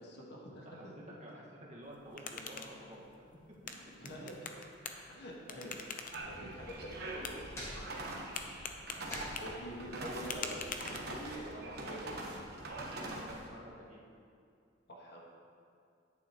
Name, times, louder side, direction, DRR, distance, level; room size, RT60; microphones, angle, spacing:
voice 1, 0.0-0.7 4.0-4.6 5.1-5.7 6.2-7.8 9.4-12.4 14.9-15.2, equal, 60° left, -3 dB, 1.6 m, -46 dB
voice 2, 0.6-3.3 3.6-3.7 5.6-5.7 6.3-6.5 6.8-6.9 8.2-8.6 13.3-14.0, equal, 35° right, -5 dB, 1.6 m, -51 dB
sound 1, 1.8-11.5, left 5 dB, 45° left, 0.6 m, -46 dB
sound 2, 6.1-13.5, right 2 dB, 55° right, 1.1 m, -43 dB
sound 3, 7.5-12.0, equal, 15° left, 1.9 m, -50 dB
10.0 x 8.9 x 3.0 m, 2.4 s
head